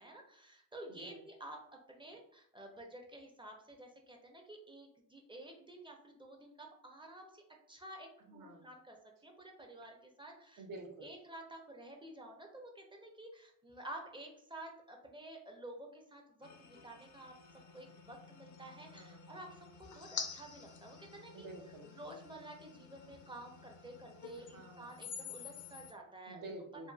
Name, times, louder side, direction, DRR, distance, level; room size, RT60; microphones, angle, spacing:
voice 1, 0.0-1.6 1.9-7.4 7.7-9.0 9.2-10.6 11.0-17.4 17.7-21.5 21.8-26.4 26.8-26.9, right 1 dB, 15° right, 1 dB, 0.5 m, -51 dB
voice 2, 0.9-1.2 8.3-8.7 10.6-11.1 18.9-19.3 21.3-21.9 24.4-25.0 26.3-26.9, right 2 dB, 65° right, 3 dB, 0.6 m, -50 dB
sound 1, 16.4-25.9, left 6 dB, 60° left, 0.5 m, -49 dB
2.6 x 2.3 x 2.3 m, 0.70 s
cardioid pair, 80°, 35 cm